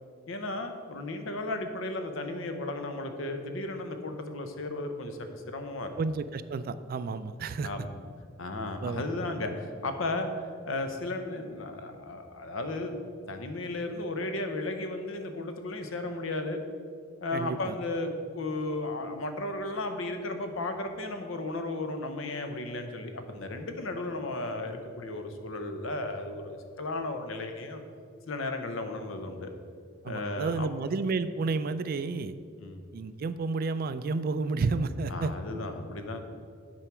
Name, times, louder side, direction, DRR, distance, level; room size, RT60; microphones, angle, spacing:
voice 1, 0.3-5.9 7.6-7.9 8.4-10.3 10.7-13.0 13.3-16.6 17.2-27.8 28.3-29.5 30.0-30.7 32.6-32.8 35.1-36.2, left 2 dB, 75° left, 6 dB, 0.9 m, -34 dB
voice 2, 6.0-7.7 8.8-9.1 17.3-17.7 30.0-32.3 32.9-35.3, right 3 dB, 50° right, 13 dB, 0.3 m, -31 dB
8.9 x 4.7 x 6.0 m, 2.2 s
head